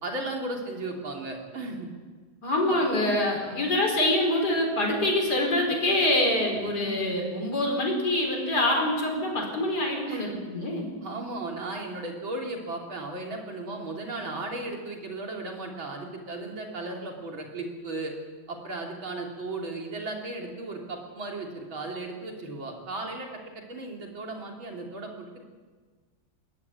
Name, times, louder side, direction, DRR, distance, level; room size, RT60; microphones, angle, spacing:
voice 1, 0.0-1.9 3.4-3.6 6.8-7.0 10.1-10.3 11.0-18.1 18.5-23.3 23.7-25.5, right 2 dB, 85° right, 0 dB, 4.2 m, -35 dB
voice 2, 2.4-10.9, left 1 dB, 55° left, 1 dB, 5.3 m, -25 dB
21.5 x 17.0 x 8.6 m, 1.4 s
omnidirectional pair, 2.1 m